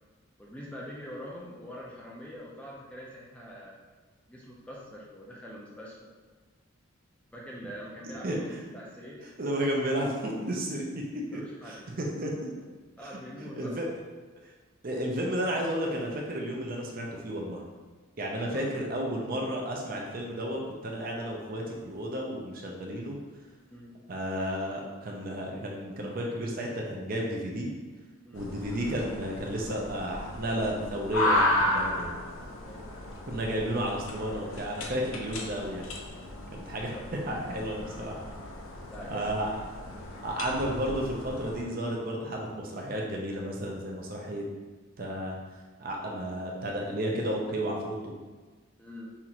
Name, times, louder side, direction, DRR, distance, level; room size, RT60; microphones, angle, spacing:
voice 1, 0.4-3.8 4.3-6.1 7.3-9.2 11.3-11.9 13.0-13.8 18.5-18.9 23.7-24.0 28.2-28.4 32.6-32.8 36.9-37.1 38.9-39.3 48.8-49.1, equal, 5° left, -5 dB, 0.5 m, -44 dB
voice 2, 8.0-8.6 9.4-10.8 11.3-12.7 13.6-13.9 14.8-17.6 18.2-23.2 24.1-27.7 28.3-32.1 33.3-35.9 36.5-36.9 37.3-38.2 39.1-39.5 40.2-44.5 45.0-45.4 45.8-48.1, equal, 45° right, -1 dB, 0.6 m, -32 dB
sound 1, 28.3-41.6, left 1 dB, 75° left, 0.6 m, -34 dB
5.6 x 2.5 x 2.9 m, 1.4 s
head